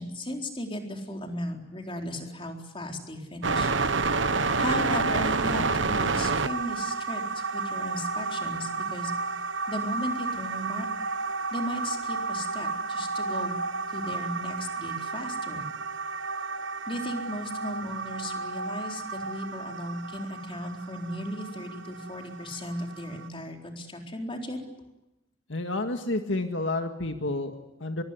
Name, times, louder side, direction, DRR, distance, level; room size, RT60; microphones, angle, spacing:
voice 1, 0.0-3.7 4.6-9.1 9.7-10.9 11.5-13.6 13.9-15.7 16.9-24.6, left 1 dB, 30° left, 3 dB, 4.1 m, -36 dB
sound 1, 3.4-23.3, right 4 dB, 75° right, 1.2 m, -30 dB
voice 2, 25.5-28.0, left 2 dB, 75° left, 5 dB, 1.9 m, -30 dB
24.5 x 23.0 x 9.8 m, 0.93 s
head